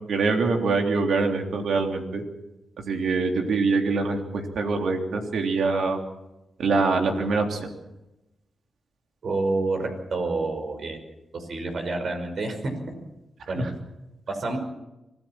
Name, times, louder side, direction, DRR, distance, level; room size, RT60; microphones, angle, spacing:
voice 1, 0.1-2.2 2.8-6.0 6.6-7.6 13.6-13.7, right 4 dB, 80° right, 3 dB, 3.4 m, -24 dB
voice 2, 9.2-11.0 11.3-12.9 13.5-13.6 14.3-14.6, right 3 dB, 65° right, 5 dB, 5.4 m, -28 dB
25.0 x 16.0 x 7.5 m, 0.96 s
cardioid pair, 65°, 0 cm